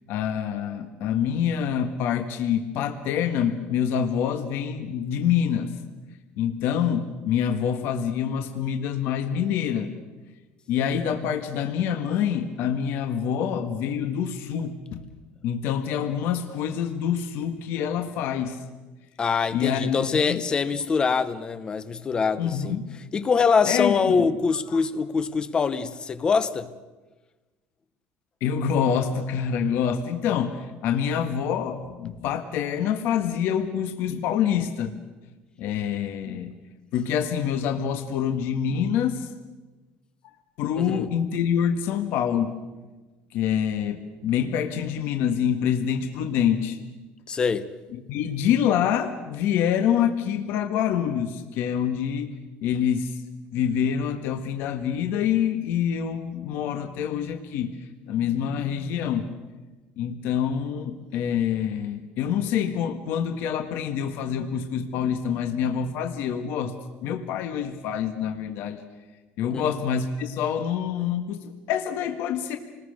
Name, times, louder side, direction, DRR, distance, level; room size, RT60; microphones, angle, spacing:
voice 1, 0.1-5.7 6.4-9.9 10.7-15.0 15.4-18.6 19.5-20.4 22.4-23.0 23.6-24.3 24.7-24.8 28.4-34.9 35.6-36.5 36.9-39.3 40.6-42.6 43.3-46.8 47.9-53.2 53.5-57.8 58.1-59.3 60.0-66.7 67.0-68.8 69.4-72.6, left 8 dB, 60° left, 1.6 m, -26 dB
voice 2, 19.2-22.8 23.1-26.7 40.8-41.1 47.3-47.7 69.5-69.6, left 5 dB, 20° left, 0.8 m, -24 dB
28.5 x 20.5 x 6.6 m
cardioid pair, 175°, 4 cm